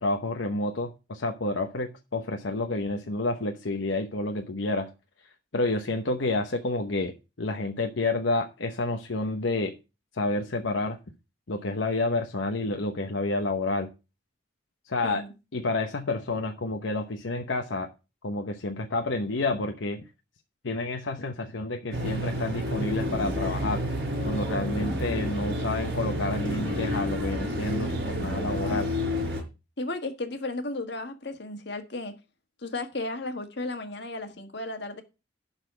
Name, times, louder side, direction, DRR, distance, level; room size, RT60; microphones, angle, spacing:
voice 1, 0.0-4.9 5.5-9.7 10.1-11.0 11.5-13.9 14.9-15.2 15.5-17.9 18.2-20.0 20.6-23.8 24.3-28.9, left 2 dB, 85° left, 0.9 m, -29 dB
sound 1, 21.9-29.4, equal, 55° right, 4.2 m, -30 dB
voice 2, 29.8-32.1 32.6-35.0, left 2 dB, 65° left, 1.6 m, -34 dB
11.5 x 4.1 x 6.7 m
head